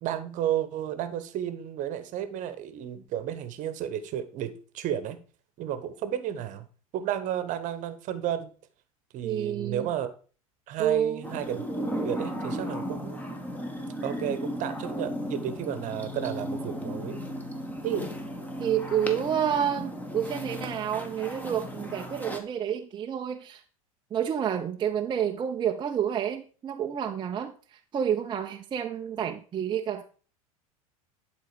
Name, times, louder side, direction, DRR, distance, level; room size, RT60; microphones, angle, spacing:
voice 1, 0.0-5.2 5.6-6.7 6.9-8.5 9.1-10.1 10.7-11.7 12.0-13.2 14.0-17.2 17.8-18.1, right 10 dB, 45° right, 11 dB, 1.2 m, -32 dB
voice 2, 9.2-9.9 10.8-11.2 18.6-23.6 24.1-27.5 27.9-30.0, right 9 dB, 25° right, 4 dB, 0.7 m, -29 dB
sound 1, 11.2-22.4, equal, 10° left, 1.6 m, -35 dB
11.5 x 4.0 x 5.0 m, 0.39 s
figure-of-eight pair, 85°, 18 cm